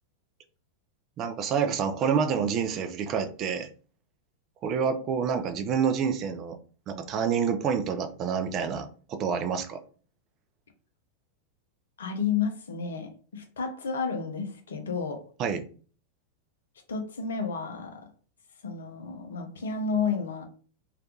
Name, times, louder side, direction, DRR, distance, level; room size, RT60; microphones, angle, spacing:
voice 1, 1.2-3.7 4.6-6.6 6.9-9.8 15.4-15.6, right 7 dB, 35° right, 0.4 m, -28 dB
voice 2, 12.0-15.2 16.9-18.1 18.6-20.5, left 5 dB, 65° left, 0.5 m, -31 dB
2.4 x 2.2 x 2.8 m
figure-of-eight pair, 90°, 0 cm